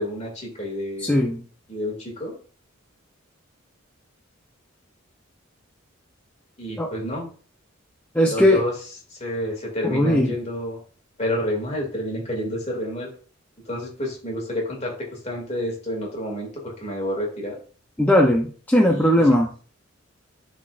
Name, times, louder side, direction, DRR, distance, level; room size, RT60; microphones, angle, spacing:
voice 1, 0.0-1.1 1.7-2.3 6.6-7.3 8.2-8.8 9.1-10.8 11.2-13.1 13.7-17.6 18.8-19.4, equal, 35° left, -1 dB, 2.4 m, -29 dB
voice 2, 1.1-1.4 6.8-6.9 8.1-8.6 9.8-10.3 18.0-19.5, left 1 dB, 10° left, -1 dB, 0.7 m, -18 dB
10.5 x 4.3 x 2.5 m, 0.40 s
head